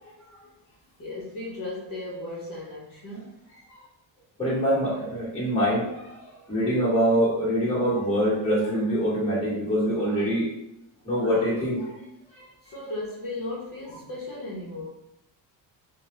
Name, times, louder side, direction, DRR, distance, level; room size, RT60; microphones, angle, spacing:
voice 1, 1.0-3.3 12.6-14.9, left 2 dB, 45° left, -6 dB, 0.8 m, -36 dB
voice 2, 4.4-6.2 6.5-10.5 11.0-11.9 12.3-12.4, equal, 15° left, -8 dB, 1.1 m, -24 dB
2.4 x 2.1 x 3.0 m, 0.84 s
cardioid pair, 135°, 48 cm